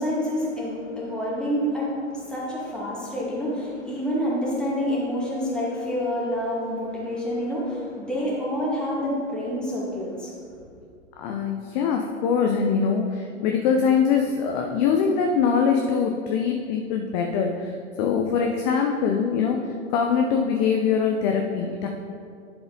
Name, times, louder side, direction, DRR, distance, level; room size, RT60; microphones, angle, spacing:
voice 1, 0.0-10.3, equal, ahead, -7 dB, 2.1 m, -28 dB
voice 2, 11.2-17.7 18.0-19.6 19.9-21.9, left 6 dB, 35° left, 2 dB, 0.6 m, -23 dB
10.5 x 5.0 x 3.9 m, 2.3 s
figure-of-eight pair, 100°, 37 cm